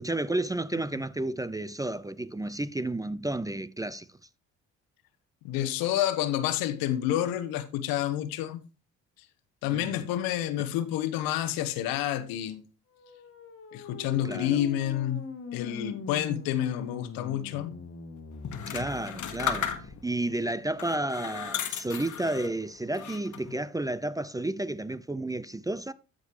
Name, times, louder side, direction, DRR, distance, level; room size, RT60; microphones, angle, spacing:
voice 1, 0.0-4.1 9.7-10.0 14.2-14.6 18.7-19.7 20.0-25.9, right 2 dB, 10° right, 0.5 m, -31 dB
voice 2, 5.4-8.6 9.6-12.6 13.7-15.2 15.5-17.7, left 12 dB, 75° left, 1.0 m, -29 dB
sound 1, 12.9-20.0, left 4 dB, 40° left, 1.5 m, -42 dB
sound 2, 18.4-20.2 20.7-22.5 22.9-23.6, left 8 dB, 55° left, 1.5 m, -35 dB
14.0 x 5.2 x 3.0 m
hypercardioid pair, 55°, 35 cm